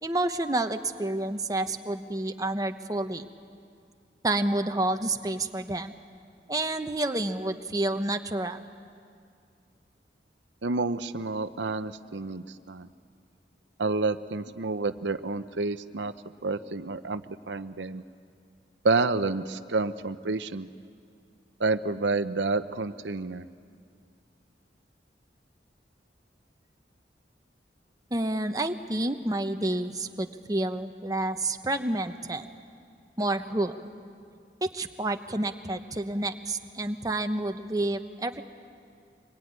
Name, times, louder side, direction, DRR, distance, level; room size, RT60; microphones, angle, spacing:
voice 1, 0.0-3.3 4.2-5.9 6.5-8.6 28.1-32.4 33.2-33.8 34.6-38.4, right 2 dB, 20° right, 7 dB, 0.9 m, -29 dB
voice 2, 10.6-12.9 13.8-16.1 16.4-17.2 17.5-18.0 18.8-20.7 21.6-23.5, right 3 dB, 90° right, 11 dB, 0.8 m, -29 dB
24.5 x 21.5 x 9.6 m, 2.3 s
head